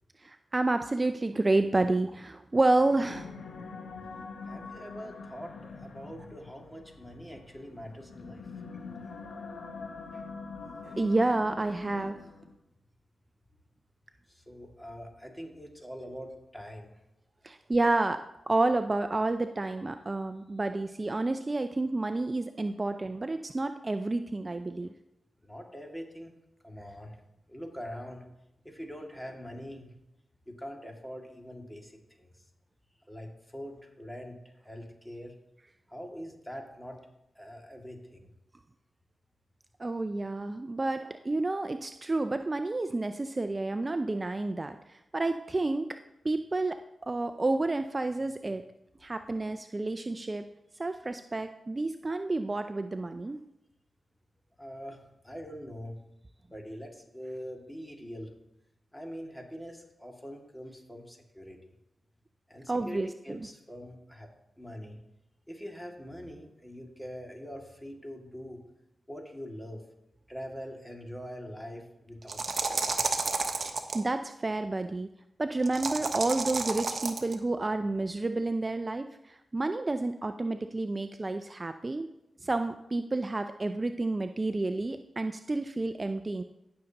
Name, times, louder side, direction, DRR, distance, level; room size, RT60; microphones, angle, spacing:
voice 1, 0.2-3.3 10.9-12.2 17.4-24.9 39.8-45.9 46.2-46.8 47.0-48.6 49.0-50.4 50.8-53.4 62.7-63.4 73.9-75.1 75.4-82.1 82.4-86.4, right 2 dB, 35° right, 8 dB, 0.4 m, -30 dB
sound 1, 2.7-12.6, left 4 dB, 85° left, 1.2 m, -44 dB
voice 2, 4.5-8.9 14.3-16.9 25.4-26.3 26.6-27.2 27.5-28.2 28.6-29.9 30.5-32.3 33.1-34.4 34.6-35.3 35.9-37.0 37.3-38.3 54.6-55.0 55.2-56.0 56.5-58.3 58.9-61.6 62.5-64.3 64.6-65.0 65.5-68.6 69.1-69.8 70.3-73.1, equal, 10° left, 1 dB, 2.3 m, -43 dB
sound 2, 72.2-74.0 75.6-77.3, right 4 dB, 60° right, 1.0 m, -31 dB
16.5 x 6.4 x 3.0 m, 0.86 s
cardioid pair, 50°, 0 cm